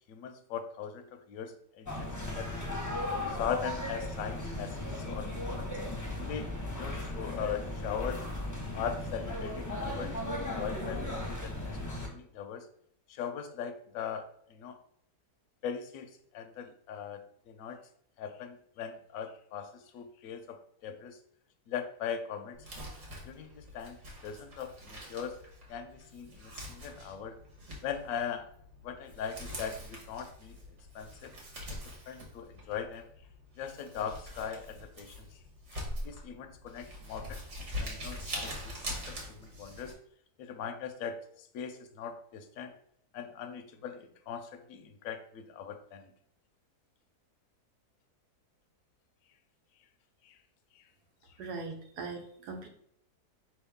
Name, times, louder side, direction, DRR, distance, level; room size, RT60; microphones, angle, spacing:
voice 1, 0.1-2.8 3.3-5.7 6.2-8.2 8.7-10.1 10.4-12.7 13.1-14.8 15.6-17.8 18.2-21.2 21.7-22.6 23.2-25.4 25.7-27.4 27.8-28.5 28.8-30.6 30.9-31.3 31.7-31.8 32.1-33.1 33.6-35.3 36.0-37.4 37.7-40.0 40.4-41.2 41.5-42.8 43.1-46.1 50.2-50.3, left 7 dB, 70° left, 7 dB, 0.9 m, -40 dB
sound 1, 1.9-12.1, left 1 dB, 15° left, 0.7 m, -36 dB
Crumpling crinkling, 22.5-39.9, equal, 50° right, 1.4 m, -44 dB
voice 2, 51.4-52.7, right 4 dB, 85° right, 4 dB, 1.4 m, -40 dB
4.7 x 3.1 x 3.5 m, 0.67 s
omnidirectional pair, 1.7 m